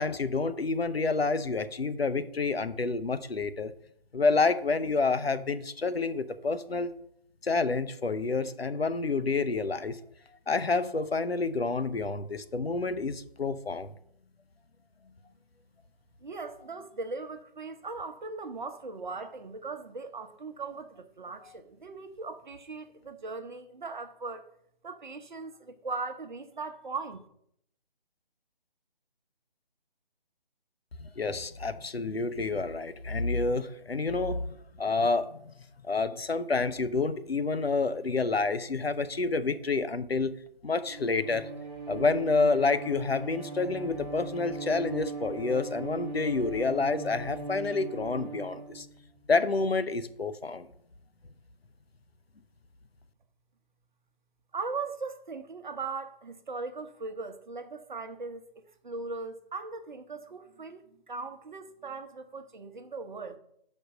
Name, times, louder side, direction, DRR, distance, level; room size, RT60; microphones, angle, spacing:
voice 1, 0.0-3.7 4.1-6.9 7.4-10.0 10.5-13.9 31.0-35.5 35.9-40.3 40.6-41.5 41.9-48.9 49.3-50.7, left 3 dB, 85° left, 0.7 m, -28 dB
voice 2, 16.2-24.5 24.8-27.2 54.5-63.4, right 4 dB, 50° right, 0.8 m, -39 dB
Bowed string instrument, 40.8-49.2, right 4 dB, 25° right, 0.9 m, -40 dB
5.5 x 5.3 x 6.3 m
figure-of-eight pair, 145°, 30 cm